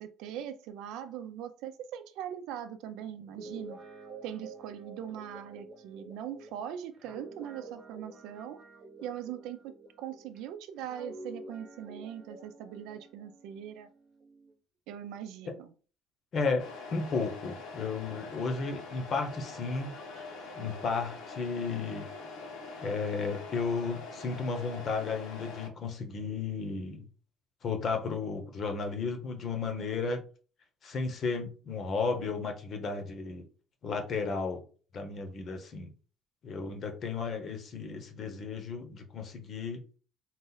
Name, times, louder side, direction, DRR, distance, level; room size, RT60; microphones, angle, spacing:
voice 1, 0.0-3.8 4.2-8.6 9.0-9.7 10.0-13.9 14.9-15.7, right 10 dB, 80° right, 0.5 m, -41 dB
Guitar, 3.2-10.4 10.8-14.5, right 3 dB, 35° right, 1.1 m, -49 dB
voice 2, 16.3-19.9 20.6-22.1 22.8-27.1 27.6-30.2 30.8-33.4 33.8-34.6 34.9-35.9 36.4-39.8, left 4 dB, 40° left, 0.9 m, -33 dB
Truck, 16.6-25.7, left 3 dB, 90° left, 1.4 m, -44 dB
4.0 x 2.5 x 4.0 m
cardioid pair, 155°, 0 cm